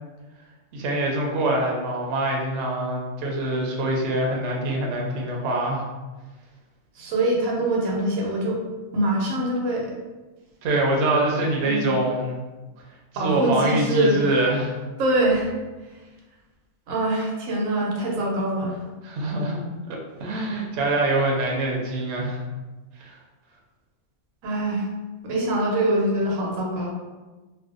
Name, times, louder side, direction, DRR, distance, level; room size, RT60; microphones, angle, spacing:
voice 1, 0.7-5.8 10.6-12.4 13.2-14.8 19.0-19.6 20.2-22.4 23.0-23.1, right 1 dB, 65° right, -1 dB, 0.8 m, -24 dB
voice 2, 7.0-8.6 8.9-9.9 11.6-11.9 13.1-14.4 15.0-15.5 16.9-18.8 24.4-24.8 25.2-26.9, right 1 dB, 85° right, -2 dB, 1.0 m, -24 dB
2.6 x 2.1 x 2.4 m, 1.2 s
omnidirectional pair, 1.4 m